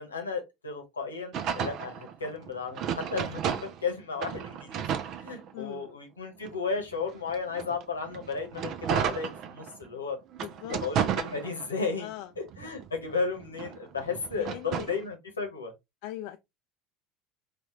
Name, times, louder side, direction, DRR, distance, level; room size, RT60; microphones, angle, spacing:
voice 1, 0.0-10.2 10.7-12.1 12.4-15.7, left 4 dB, 80° left, 1.0 m, -34 dB
sound 1, 1.3-3.9 4.2-5.9 6.4-9.9 10.3-12.0 12.4-15.0, right 8 dB, 45° right, 0.4 m, -33 dB
voice 2, 5.5-5.9 10.4-10.8 12.0-12.3 14.5-14.9 16.0-16.4, left 14 dB, 60° left, 0.3 m, -40 dB
4.1 x 2.3 x 2.9 m
figure-of-eight pair, 70°, 0 cm